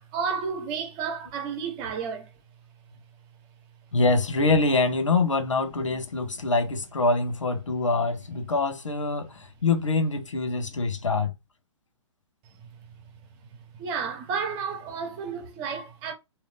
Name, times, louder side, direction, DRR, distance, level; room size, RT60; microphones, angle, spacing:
voice 1, 0.0-2.3 13.8-16.1, right 6 dB, 30° right, 1.1 m, -31 dB
voice 2, 3.9-9.3 9.6-11.3, left 3 dB, 80° left, 0.9 m, -24 dB
3.6 x 2.8 x 3.3 m
figure-of-eight pair, 125°, 16 cm